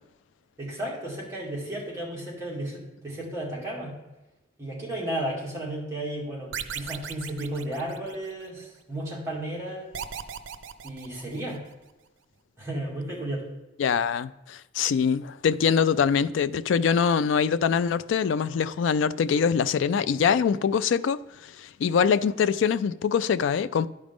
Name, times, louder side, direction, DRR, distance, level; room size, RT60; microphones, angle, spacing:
voice 1, 0.6-3.9 4.6-9.9 10.8-11.6 12.6-13.5, right 1 dB, 15° right, 2.0 m, -33 dB
sound 1, 6.5-8.5 9.9-11.7, right 8 dB, 90° right, 0.5 m, -37 dB
voice 2, 13.8-23.9, left 6 dB, 75° left, 0.3 m, -24 dB
11.5 x 5.0 x 3.6 m
head